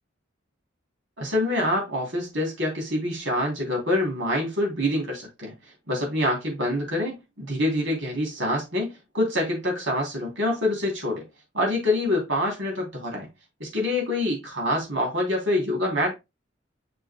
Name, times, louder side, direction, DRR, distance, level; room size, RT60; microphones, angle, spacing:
voice 1, 1.2-5.5 5.9-11.2 11.5-13.3 13.6-16.1, left 1 dB, 70° right, 3.1 m, -26 dB
6.7 x 6.2 x 2.2 m
head